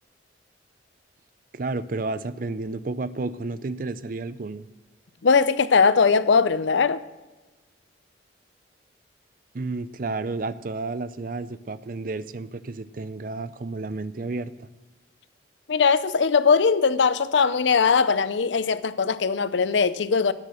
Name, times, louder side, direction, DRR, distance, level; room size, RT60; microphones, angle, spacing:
voice 1, 1.5-4.7 9.5-14.7, right 3 dB, 50° right, 0.5 m, -31 dB
voice 2, 5.2-7.0 15.7-20.3, left 5 dB, 75° left, 0.6 m, -20 dB
12.0 x 9.7 x 6.4 m
head